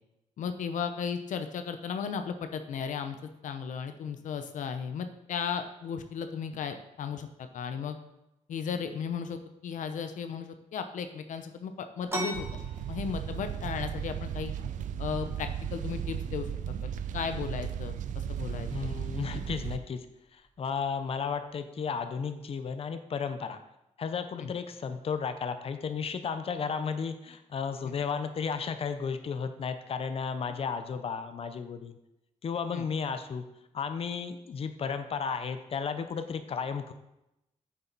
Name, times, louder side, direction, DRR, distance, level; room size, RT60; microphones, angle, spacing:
voice 1, 0.4-3.2 3.4-8.0 8.5-12.6 12.9-14.5 15.0-16.5 16.8-18.0 18.3-18.9 24.4-24.5 27.8-28.0 32.7-32.8, left 6 dB, 85° left, 8 dB, 0.7 m, -35 dB
sound 1, 12.1-21.5, right 2 dB, 20° right, 1.4 m, -45 dB
sound 2, 12.3-19.8, right 9 dB, 90° right, 0.5 m, -35 dB
voice 2, 18.7-20.0 20.3-23.6 24.0-32.0 32.4-33.4 33.7-36.9, left 6 dB, 50° left, 9 dB, 0.7 m, -33 dB
8.7 x 7.0 x 4.0 m, 0.89 s
cardioid pair, 110°, 13 cm